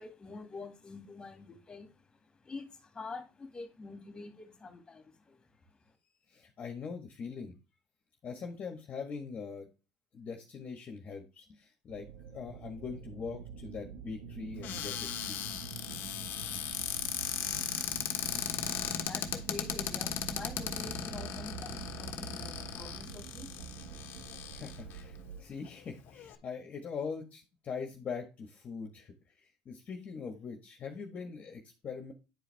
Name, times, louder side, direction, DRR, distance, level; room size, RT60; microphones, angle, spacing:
voice 1, 0.0-5.9 18.4-24.6, left 3 dB, 20° left, 2.3 m, -47 dB
voice 2, 6.3-7.5 8.2-9.7 10.1-15.6 16.2-16.3 24.5-32.1, left 5 dB, 40° left, 1.6 m, -42 dB
sound 1, 11.9-25.4, right 7 dB, 90° right, 1.3 m, -46 dB
Cupboard open or close, 14.6-25.0 25.7-25.8 26.0-26.3, left 10 dB, 60° left, 1.2 m, -37 dB
10.0 x 4.8 x 3.5 m
supercardioid pair, 100°, 4 cm